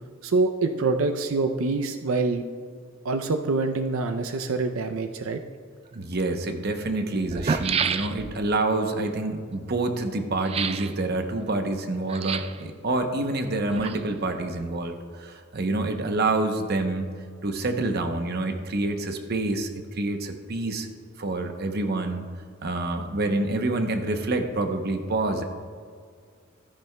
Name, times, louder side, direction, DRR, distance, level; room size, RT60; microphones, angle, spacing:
voice 1, 0.2-2.4 3.0-5.4, right 3 dB, 85° right, 6 dB, 0.5 m, -25 dB
sound 1, 5.9-6.0 6.9-7.0 7.2-8.5 10.4-10.9 12.1-12.6 13.5-14.3 14.6-14.7, right 6 dB, 30° right, 0.3 m, -29 dB
voice 2, 5.9-17.1 17.4-20.9 21.2-22.2 22.6-25.4, right 2 dB, 50° right, 6 dB, 0.8 m, -27 dB
13.5 x 10.5 x 2.2 m, 2.1 s
head